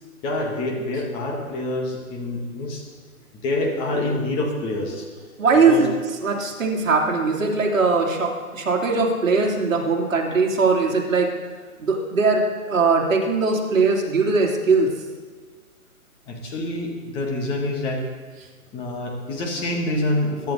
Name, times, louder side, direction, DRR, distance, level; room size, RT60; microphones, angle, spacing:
voice 1, 0.2-2.8 3.4-5.1 5.7-5.8 16.3-18.0 18.7-20.5, left 2 dB, 10° left, 0 dB, 1.4 m, -26 dB
voice 2, 5.4-5.9 6.2-11.3 11.8-14.9, right 4 dB, 60° right, 0 dB, 3.1 m, -20 dB
22.5 x 10.5 x 4.0 m, 1.5 s
hypercardioid pair, 155°, 44 cm